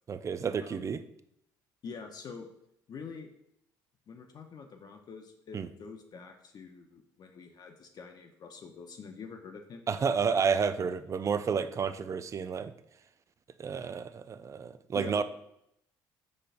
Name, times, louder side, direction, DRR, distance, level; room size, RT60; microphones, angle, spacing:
voice 1, 0.1-1.0 5.5-5.7 9.9-12.7 13.6-15.2, right 6 dB, 35° right, 12 dB, 0.4 m, -30 dB
voice 2, 1.8-2.5 2.9-3.3 4.1-9.9 14.9-15.2, left 5 dB, 50° left, 4 dB, 0.6 m, -45 dB
5.1 x 4.1 x 2.5 m, 0.77 s
supercardioid pair, 70°, 9 cm